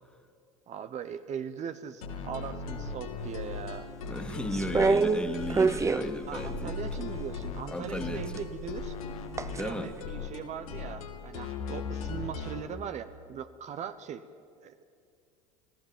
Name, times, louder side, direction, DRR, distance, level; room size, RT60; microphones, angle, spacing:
voice 1, 0.7-3.9 6.3-9.0 9.5-14.2 14.6-14.8, right 8 dB, 40° right, 10 dB, 1.1 m, -40 dB
sound 1, 2.0-12.7, left 5 dB, 80° left, 2.7 m, -38 dB
voice 2, 4.1-6.8 7.7-8.2 9.6-9.9, equal, 5° left, 4 dB, 2.3 m, -35 dB
sound 2, 4.5-7.3 8.2-9.6 10.0-10.1, right 4 dB, 15° right, 0.9 m, -27 dB
27.0 x 16.5 x 9.0 m, 2.3 s
hypercardioid pair, 85°, 18 cm